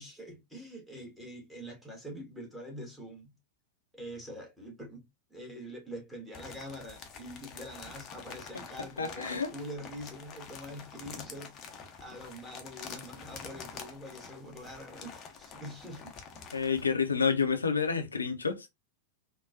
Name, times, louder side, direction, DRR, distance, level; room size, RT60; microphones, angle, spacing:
voice 1, 0.0-3.3 3.9-11.5 12.0-16.1, equal, 5° right, 1.4 m, -45 dB
sound 1, 6.3-16.9, left 6 dB, 30° left, 0.6 m, -47 dB
voice 2, 9.0-9.5 16.5-18.7, left 6 dB, 75° left, 0.6 m, -29 dB
3.8 x 2.2 x 2.3 m
figure-of-eight pair, 90°, 0 cm